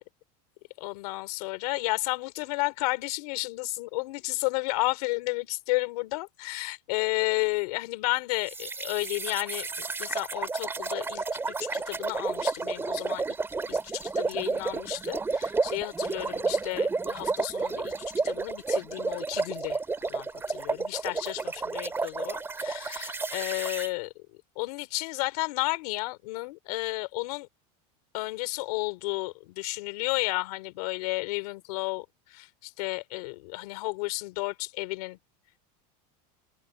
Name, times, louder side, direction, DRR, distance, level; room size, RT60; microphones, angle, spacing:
voice 1, 0.8-13.2 13.7-17.9 18.2-24.1 24.5-27.5 28.1-35.2, left 23 dB, 75° left, 3.3 m, -32 dB
sound 1, 8.5-23.9, right 4 dB, 10° right, 2.5 m, -31 dB
open air
supercardioid pair, 155°, 20 cm